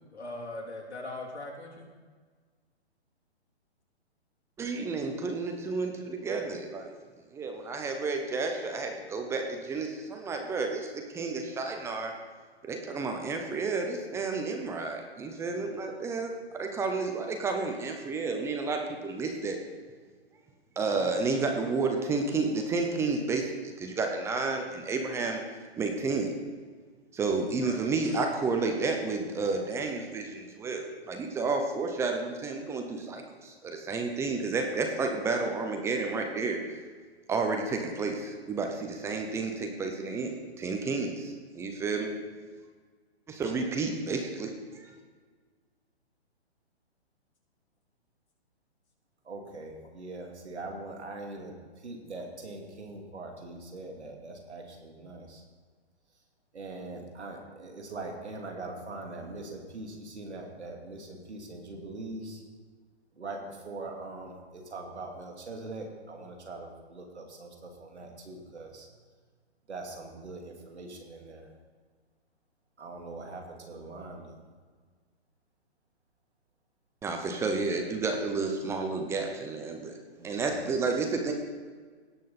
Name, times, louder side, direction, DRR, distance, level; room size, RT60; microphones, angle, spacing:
voice 1, 0.1-1.8 20.9-21.1 27.6-27.8 62.2-62.5, left 2 dB, 75° left, -1 dB, 3.2 m, -41 dB
voice 2, 4.6-6.9 7.3-12.1 12.7-19.6 20.8-25.4 25.8-26.3 27.1-36.8 37.3-42.1 43.3-44.9 77.0-80.0 80.2-81.3, right 4 dB, 10° right, 3 dB, 0.7 m, -31 dB
voice 3, 49.2-55.4 56.5-62.4 63.2-68.9 69.7-71.5 72.8-74.4 80.2-80.7, right 2 dB, 80° right, 1 dB, 2.6 m, -42 dB
17.5 x 6.4 x 4.2 m, 1.5 s
hypercardioid pair, 140°, 33 cm